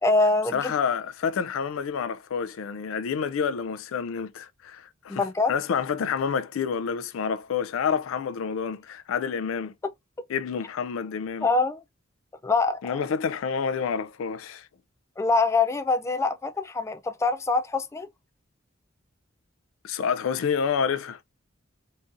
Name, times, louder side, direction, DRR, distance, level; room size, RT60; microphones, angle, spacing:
voice 1, 0.0-0.7 5.1-5.5 11.4-11.8 12.4-12.8 15.2-18.1, left 3 dB, 15° left, 0.3 m, -24 dB
voice 2, 0.5-9.7 10.3-11.5 12.8-14.7 19.8-21.2, left 6 dB, 90° left, 0.4 m, -28 dB
3.9 x 2.6 x 2.4 m
head